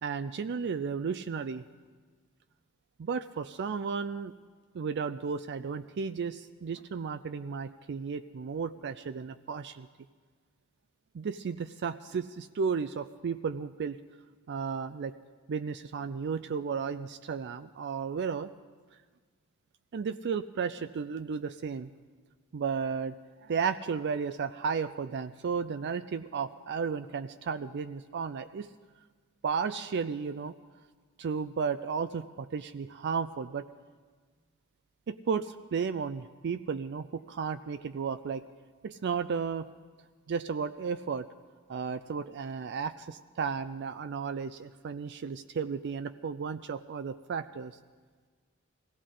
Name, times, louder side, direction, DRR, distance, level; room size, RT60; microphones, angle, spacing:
voice 1, 0.0-1.6 3.0-4.3 4.7-9.9 11.1-14.0 14.5-15.1 15.5-18.5 19.9-21.9 22.5-23.2 23.4-28.7 29.4-30.5 31.2-33.7 35.1-38.4 38.8-39.7 40.3-41.3 41.7-47.8, right 6 dB, 55° right, 11 dB, 0.4 m, -34 dB
21.5 x 16.0 x 3.8 m, 1.5 s
head